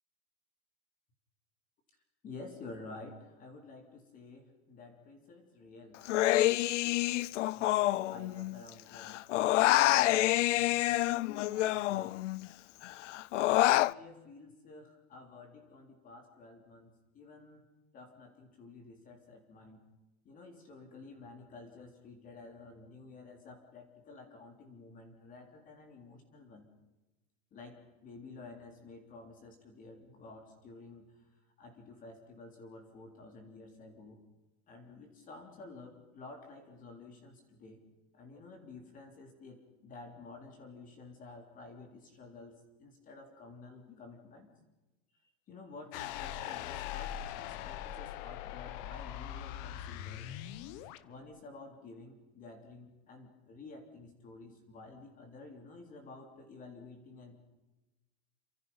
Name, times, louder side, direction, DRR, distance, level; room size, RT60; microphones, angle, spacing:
voice 1, 2.2-6.0 6.6-9.2 9.5-12.2 13.4-17.6 17.9-19.8 20.3-26.7 27.5-31.3 31.6-34.2 34.7-37.8 38.1-44.5 45.5-50.3 51.0-57.4, left 3 dB, 25° left, 4 dB, 3.5 m, -51 dB
Human voice, 6.0-8.7 9.0-12.5 12.8-13.9, left 16 dB, 85° left, 0.7 m, -27 dB
sound 1, 45.9-51.0, left 12 dB, 40° left, 1.2 m, -41 dB
28.0 x 26.5 x 5.6 m, 1.0 s
supercardioid pair, 170°, 35 cm